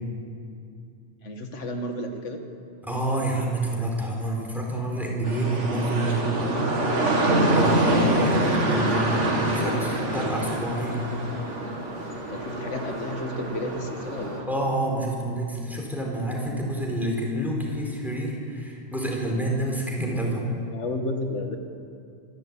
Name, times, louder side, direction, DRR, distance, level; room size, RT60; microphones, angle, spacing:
voice 1, 1.2-2.5 9.3-9.8 12.3-14.5 20.7-21.6, left 1 dB, 90° left, 5 dB, 1.8 m, -32 dB
voice 2, 2.9-6.7 7.0-7.1 7.5-11.0 14.5-20.5, right 1 dB, ahead, -1 dB, 4.2 m, -28 dB
sound 1, 5.2-14.4, right 1 dB, 85° right, 2.4 m, -25 dB
sound 2, 7.8-14.4, left 1 dB, 35° left, 2.7 m, -42 dB
25.5 x 12.0 x 8.8 m, 2.5 s
omnidirectional pair, 1.2 m